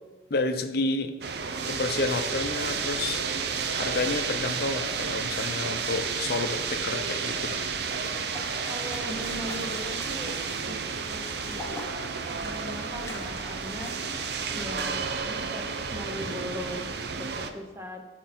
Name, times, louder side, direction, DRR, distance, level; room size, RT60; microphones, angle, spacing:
voice 1, 0.3-1.1 1.7-3.2 3.7-7.7, left 3 dB, 55° left, 8 dB, 0.6 m, -30 dB
sound 1, 1.2-17.5, right 5 dB, 60° right, 0.6 m, -31 dB
sound 2, 7.9-14.4 14.7-14.9, left 1 dB, 15° left, 1.1 m, -44 dB
voice 2, 8.6-10.4 10.6-11.7 12.4-13.9 14.5-15.6 15.9-16.9 17.1-18.0, equal, 15° right, 2 dB, 1.0 m, -39 dB
12.5 x 4.5 x 4.4 m, 1.2 s
head